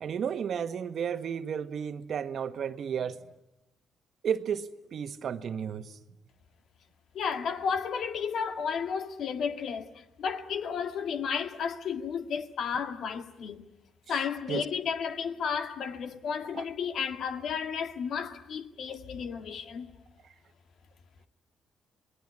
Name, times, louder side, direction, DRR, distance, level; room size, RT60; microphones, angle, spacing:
voice 1, 0.0-3.2 4.2-5.9 14.5-14.6 16.5-16.6, right 7 dB, 60° right, 1.4 m, -32 dB
voice 2, 7.1-13.7 14.1-19.9, left 6 dB, 65° left, 1.8 m, -33 dB
27.5 x 20.0 x 9.9 m
cardioid pair, 90°, 0 cm